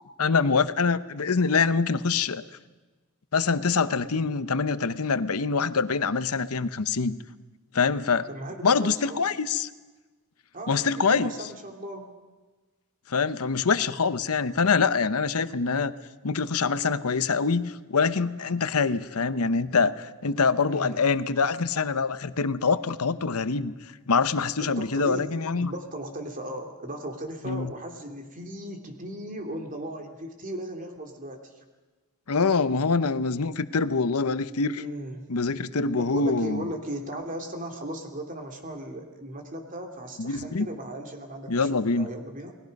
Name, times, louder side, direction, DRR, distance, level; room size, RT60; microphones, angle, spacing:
voice 1, 0.2-2.4 3.3-7.2 7.7-8.3 8.6-9.7 10.7-11.3 13.1-15.9 16.2-23.7 24.1-25.7 27.4-27.7 32.3-34.8 35.3-36.7 40.2-40.7 41.5-42.1, left 4 dB, 80° left, 13 dB, 0.8 m, -25 dB
voice 2, 8.3-9.2 10.5-12.1 20.6-21.1 24.6-31.6 34.7-35.2 36.0-42.6, right 1 dB, 35° right, 3 dB, 2.8 m, -37 dB
29.5 x 19.5 x 5.4 m, 1.2 s
head